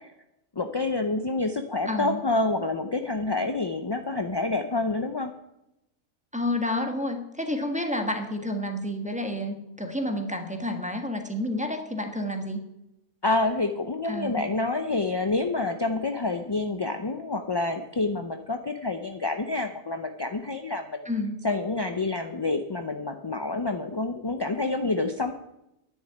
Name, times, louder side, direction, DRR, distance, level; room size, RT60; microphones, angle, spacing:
voice 1, 0.6-5.3 13.2-21.0 21.4-25.3, left 3 dB, 30° left, 6 dB, 0.5 m, -28 dB
voice 2, 1.8-2.2 6.3-12.6 14.1-14.5 21.0-21.4, left 1 dB, 5° right, 4 dB, 1.4 m, -30 dB
10.0 x 7.2 x 9.3 m, 0.87 s
omnidirectional pair, 1.4 m